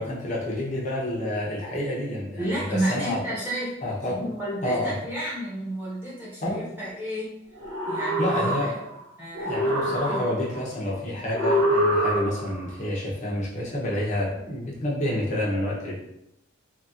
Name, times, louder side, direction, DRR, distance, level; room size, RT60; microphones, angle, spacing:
voice 1, 0.0-3.2 3.8-4.1 4.6-5.0 6.4-6.6 8.2-8.8 9.4-16.0, left 1 dB, 35° left, -5 dB, 0.6 m, -29 dB
voice 2, 2.4-3.7 4.1-7.4 7.9-8.5 9.2-10.3, right 1 dB, 10° right, -9 dB, 1.2 m, -31 dB
sound 1, 7.6-9.0 9.3-10.6 11.3-12.6, equal, 80° right, 0.8 m, -25 dB
2.9 x 2.7 x 2.4 m, 0.80 s
head